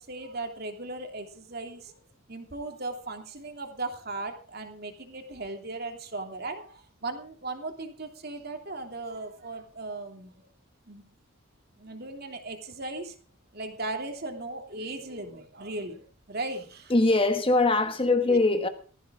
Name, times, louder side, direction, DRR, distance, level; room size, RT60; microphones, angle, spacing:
voice 1, 0.0-2.0 2.3-10.4 10.9-11.1 11.8-13.1 13.5-16.9 18.3-18.4, right 2 dB, 50° right, 2.9 m, -37 dB
voice 2, 16.9-18.7, left 2 dB, 25° left, 1.3 m, -22 dB
16.5 x 14.5 x 3.7 m
head